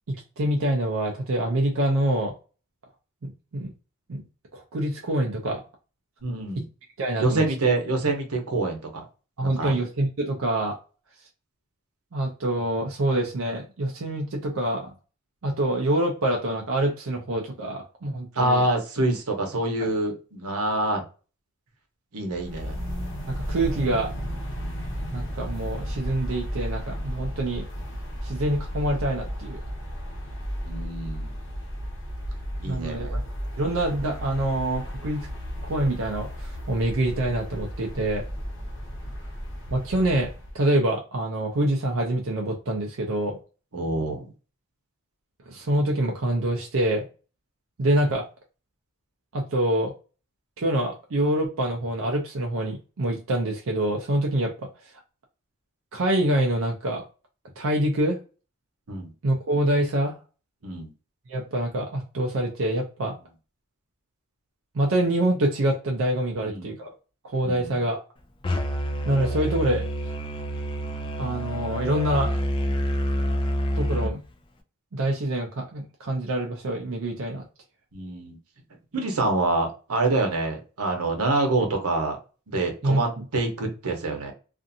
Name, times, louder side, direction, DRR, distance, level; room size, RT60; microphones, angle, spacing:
voice 1, 0.1-2.3 3.2-3.7 4.1-4.2 4.5-5.6 7.0-7.4 9.4-10.8 12.1-14.9 15.4-18.6 19.8-19.9 23.3-24.1 25.1-27.7 28.2-29.6 32.6-33.2 33.6-35.3 35.6-38.2 39.7-43.4 45.5-47.1 47.8-48.3 49.3-49.9 50.6-54.7 55.9-57.0 57.6-58.2 59.2-60.2 61.3-63.2 64.7-66.9 67.2-68.0 69.1-69.8 71.2-72.4 73.8-74.2 74.9-77.4 82.8-83.0, right 1 dB, 60° right, 0 dB, 0.5 m, -26 dB
voice 2, 6.2-6.7 7.2-9.0 9.4-9.8 18.3-21.0 22.1-22.8 30.6-31.3 32.6-33.2 43.7-44.3 58.9-59.1 60.6-60.9 66.3-66.7 67.4-67.8 77.9-78.4 78.9-82.2 82.5-84.3, right 2 dB, 90° right, 3 dB, 0.9 m, -26 dB
sound 1, 22.3-40.6, equal, 60° left, 0.9 m, -34 dB
Musical instrument, 68.4-74.1, equal, 20° left, 0.3 m, -27 dB
2.5 x 2.5 x 2.6 m, 0.34 s
head